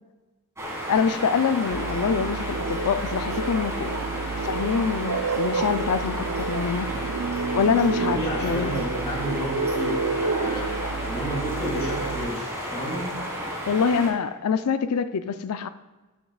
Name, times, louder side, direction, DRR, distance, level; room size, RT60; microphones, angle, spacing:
sound 1, 0.6-14.1, equal, 15° right, 1.8 m, -33 dB
voice 1, 0.9-3.9 4.4-6.9 7.5-8.8 10.6-10.7 13.7-15.7, left 6 dB, 80° left, 12 dB, 0.4 m, -25 dB
sound 2, 1.7-12.3, right 4 dB, 85° right, 0.4 m, -30 dB
voice 2, 8.0-13.1, equal, 30° left, -5 dB, 2.5 m, -31 dB
12.0 x 7.3 x 2.4 m, 1.2 s
head